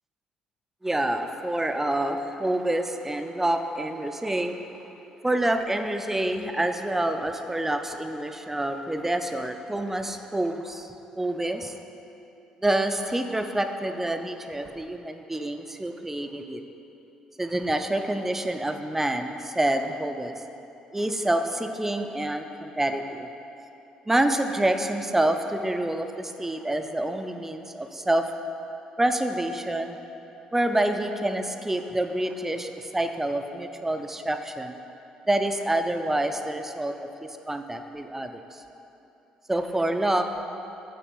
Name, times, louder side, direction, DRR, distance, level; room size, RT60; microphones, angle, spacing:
voice 1, 0.8-4.6 5.2-10.9 11.2-11.7 12.6-16.6 17.4-20.3 20.9-23.3 24.1-28.3 29.0-30.0 30.5-34.7 35.3-36.9 37.2-38.6 39.5-40.5, right 1 dB, 10° right, 6 dB, 0.5 m, -27 dB
7.2 x 4.2 x 5.3 m, 2.9 s
hypercardioid pair, 50°, 3 cm